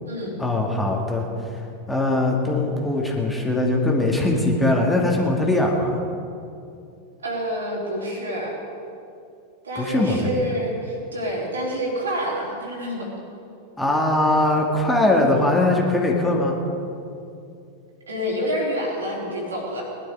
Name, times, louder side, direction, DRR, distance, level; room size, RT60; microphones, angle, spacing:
voice 1, 0.4-1.6 1.9-6.0 9.8-10.4 13.8-16.6, left 2 dB, 5° left, -1 dB, 2.2 m, -21 dB
voice 2, 7.2-8.5 9.6-13.1 18.1-19.8, equal, 70° right, -3 dB, 3.8 m, -27 dB
20.5 x 12.0 x 4.9 m, 2.6 s
figure-of-eight pair, 90°, 0 cm